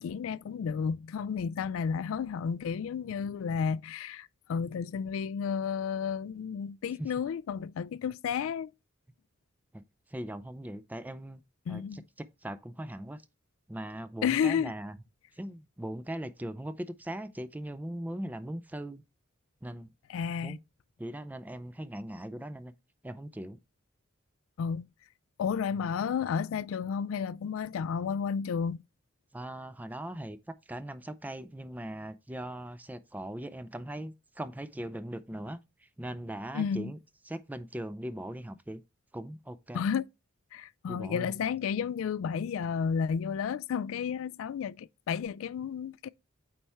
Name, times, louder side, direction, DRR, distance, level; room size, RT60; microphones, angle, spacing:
voice 1, 0.0-8.7 11.7-12.0 14.2-14.7 20.1-20.6 24.6-24.9 25.4-28.8 36.5-36.9 39.7-40.1 40.5-46.1, left 6 dB, 80° left, 0.3 m, -32 dB
voice 2, 10.1-11.4 11.7-13.2 13.7-15.0 15.3-19.0 19.6-19.9 20.4-20.6 21.0-22.7 23.0-23.6 29.3-30.4 30.7-37.0 37.3-38.8 39.1-39.8 40.9-41.3, right 1 dB, 10° right, 0.4 m, -40 dB
8.6 x 4.4 x 3.4 m
head